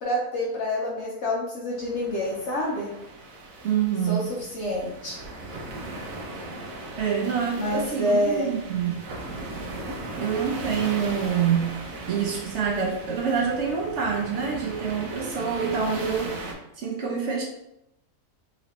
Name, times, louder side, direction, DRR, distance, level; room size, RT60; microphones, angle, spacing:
voice 1, 0.0-2.9 4.0-5.2 7.5-8.5, left 1 dB, 60° left, -3 dB, 0.8 m, -27 dB
sound 1, 1.7-16.5, right 2 dB, 75° right, 1.1 m, -38 dB
voice 2, 3.6-4.3 7.0-9.0 10.2-11.7 12.1-16.4 16.8-17.4, right 7 dB, 60° right, -1 dB, 0.8 m, -26 dB
3.0 x 3.0 x 2.9 m, 0.81 s
omnidirectional pair, 1.7 m